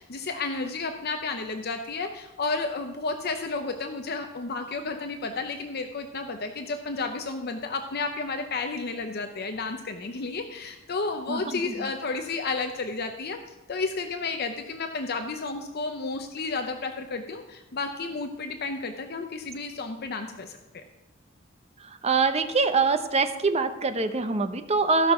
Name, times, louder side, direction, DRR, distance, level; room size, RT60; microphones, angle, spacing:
voice 1, 0.0-20.6, left 3 dB, 55° left, 6 dB, 0.7 m, -32 dB
voice 2, 11.3-11.9 21.8-25.1, right 4 dB, 35° right, 8 dB, 0.8 m, -24 dB
15.0 x 5.9 x 5.7 m, 1.1 s
head